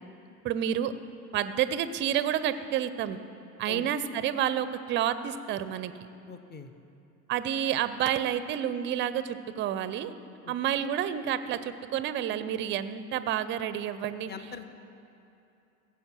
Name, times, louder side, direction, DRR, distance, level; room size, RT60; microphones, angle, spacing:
voice 1, 0.4-0.9 1.3-3.2 3.6-5.9 7.3-10.1 10.5-14.3, right 10 dB, 25° right, 13 dB, 0.5 m, -29 dB
voice 2, 6.3-6.7 10.4-10.5 14.3-14.7, left 4 dB, 20° left, 9 dB, 0.9 m, -42 dB
16.0 x 7.4 x 6.0 m, 2.7 s
figure-of-eight pair, 80°, 50 cm